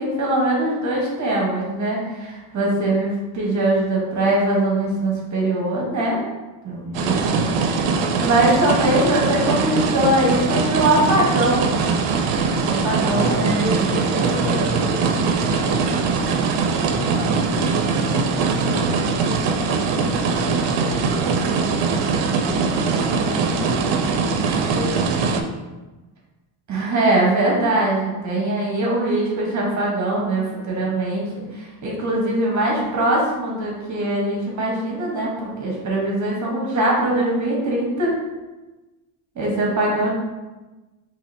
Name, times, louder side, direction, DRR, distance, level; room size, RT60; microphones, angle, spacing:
voice 1, 0.0-6.2 6.6-7.2 7.9-11.8 12.6-14.0 26.7-38.2 39.3-40.1, right 1 dB, 35° right, -3 dB, 1.0 m, -22 dB
voice 2, 6.8-7.5 13.1-15.8 16.6-19.4 19.7-21.8 22.4-25.2, left 1 dB, 55° left, -4 dB, 1.3 m, -30 dB
sound 1, 6.9-25.4, right 5 dB, 65° right, 0.6 m, -21 dB
4.8 x 2.8 x 2.6 m, 1.1 s
cardioid pair, 135°, 48 cm